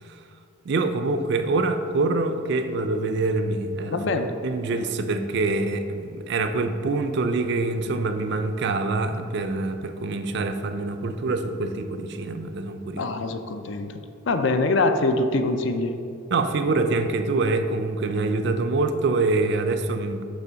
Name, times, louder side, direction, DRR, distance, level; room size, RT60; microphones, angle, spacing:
voice 1, 0.6-4.0 4.4-13.1 16.3-20.3, right 3 dB, 60° right, 8 dB, 0.4 m, -25 dB
voice 2, 3.9-4.3 12.9-16.0, left 2 dB, 65° left, 8 dB, 0.5 m, -24 dB
5.6 x 4.4 x 6.1 m, 2.6 s
head